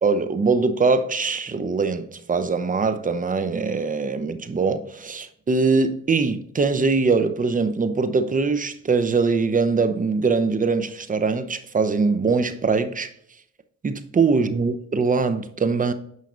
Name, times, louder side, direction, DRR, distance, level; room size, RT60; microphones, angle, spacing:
voice 1, 0.0-13.1 13.8-15.9, right 4 dB, 25° right, 0.8 m, -22 dB
9.5 x 5.6 x 2.5 m
cardioid pair, 90°, 30 cm